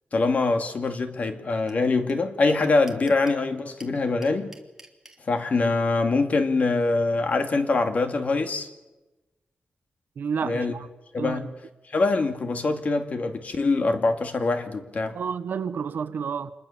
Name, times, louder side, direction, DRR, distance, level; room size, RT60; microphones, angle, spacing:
voice 1, 0.1-4.6 5.3-8.7 10.4-10.7 11.1-11.5 11.9-15.2, left 3 dB, 50° left, 2.5 m, -24 dB
sound 1, 1.7-1.8 2.1-2.2 2.4-3.4 3.8-5.2, right 2 dB, 10° right, 2.8 m, -48 dB
voice 2, 10.2-10.9 11.2-11.5 15.1-16.5, right 6 dB, 75° right, 1.2 m, -30 dB
27.0 x 21.5 x 7.3 m
wide cardioid pair, 130°, 3 cm